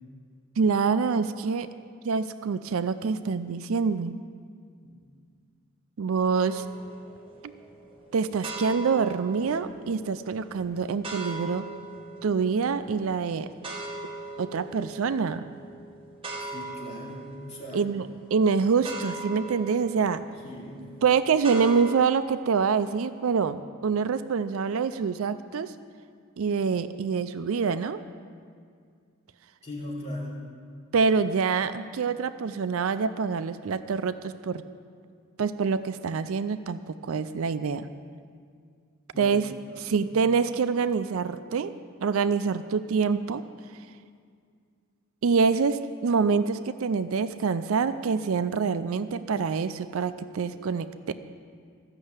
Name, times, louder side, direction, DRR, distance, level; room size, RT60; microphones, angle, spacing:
voice 1, 0.6-1.7 2.0-4.2 6.0-6.6 7.4-7.5 8.1-11.7 12.2-13.5 14.4-15.4 17.7-20.2 21.0-25.7 26.4-28.0 30.9-34.6 35.4-37.9 39.2-39.5 39.8-41.7 42.0-43.4 45.2-51.1, right 5 dB, 65° right, 12 dB, 0.4 m, -26 dB
sound 1, 6.4-22.0, right 2 dB, 25° right, 1.5 m, -41 dB
voice 2, 16.5-17.9 20.4-20.9 29.6-30.5 39.1-39.4 39.6-40.1, left 1 dB, 30° left, -5 dB, 2.9 m, -39 dB
13.5 x 6.5 x 8.0 m, 2.1 s
head